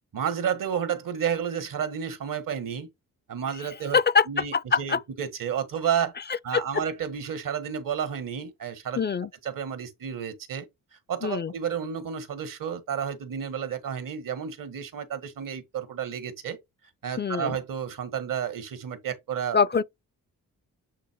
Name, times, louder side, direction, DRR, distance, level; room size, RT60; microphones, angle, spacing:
voice 1, 0.1-2.9 3.3-4.0 4.3-6.1 6.4-9.0 9.4-10.7 10.9-16.6 17.0-19.6, right 8 dB, 70° right, 1.8 m, -31 dB
voice 2, 3.9-4.2 4.7-5.0 6.5-6.6 9.0-9.3 11.2-11.5 17.2-17.5 19.5-19.8, left 6 dB, 30° left, 0.5 m, -23 dB
8.4 x 2.8 x 4.6 m
cardioid pair, 80°, 34 cm